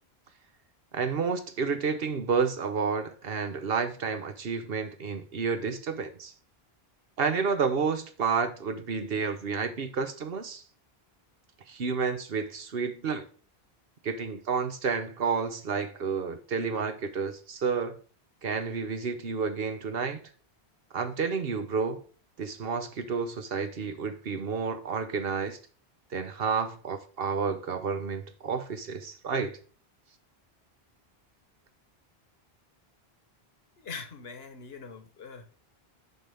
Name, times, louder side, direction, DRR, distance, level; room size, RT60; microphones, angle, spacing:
voice 1, 0.9-6.3 7.2-10.6 11.7-13.3 14.0-17.9 18.4-20.2 20.9-22.0 22.4-25.6 26.1-29.6, right 5 dB, 65° right, 1.2 m, -30 dB
voice 2, 33.8-35.4, left 5 dB, 75° left, 1.3 m, -42 dB
6.9 x 5.7 x 3.4 m
omnidirectional pair, 1.1 m